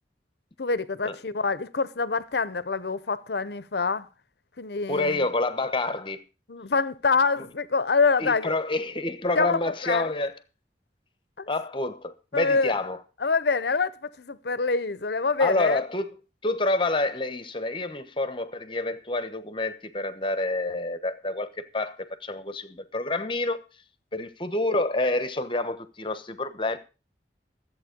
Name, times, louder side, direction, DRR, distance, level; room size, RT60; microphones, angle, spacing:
voice 1, 0.6-4.1 4.6-5.3 6.5-8.5 9.3-10.0 11.4-11.5 12.3-12.8 13.2-15.8, left 4 dB, 65° left, 0.8 m, -26 dB
voice 2, 4.9-6.2 7.4-7.5 8.2-10.3 11.5-13.0 15.4-16.1 16.4-23.6 24.1-26.8, left 2 dB, 30° left, 1.0 m, -28 dB
14.0 x 7.9 x 5.2 m
head